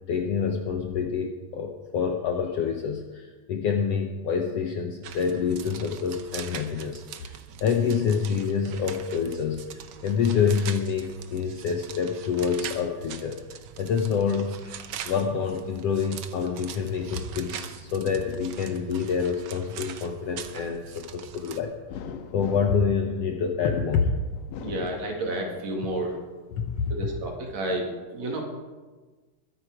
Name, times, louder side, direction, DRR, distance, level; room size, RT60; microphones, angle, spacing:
voice 1, 0.1-22.0 22.3-24.1 26.6-26.7, left 6 dB, 70° left, 4 dB, 1.6 m, -27 dB
sound 1, 5.0-21.6, right 9 dB, 75° right, 1.3 m, -42 dB
sound 2, 21.9-23.8 24.4-25.7 26.1-27.0, left 6 dB, 90° left, 2.5 m, -41 dB
voice 2, 24.6-26.2 26.9-28.4, right 1 dB, 60° right, 1 dB, 3.3 m, -31 dB
22.0 x 9.3 x 4.9 m, 1.3 s
omnidirectional pair, 3.7 m